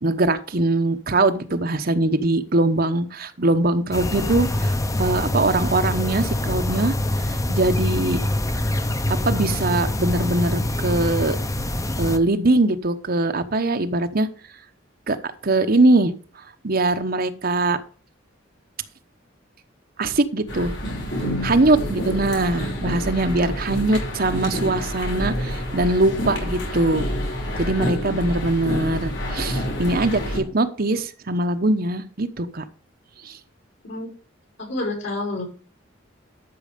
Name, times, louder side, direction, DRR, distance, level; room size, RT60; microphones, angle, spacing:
voice 1, 0.0-6.9 7.5-8.2 9.1-11.4 12.0-14.3 15.1-15.2 15.4-16.1 16.6-17.8 20.0-20.7 21.4-27.1 27.6-32.6 33.2-33.4, right 2 dB, 50° right, 8 dB, 1.0 m, -22 dB
sound 1, 3.9-12.2, left 1 dB, 15° left, 0.8 m, -25 dB
sound 2, 20.5-30.4, equal, 60° left, 5.6 m, -28 dB
voice 2, 34.6-35.4, left 2 dB, 75° left, 2 dB, 5.9 m, -28 dB
12.5 x 6.3 x 5.2 m, 0.40 s
head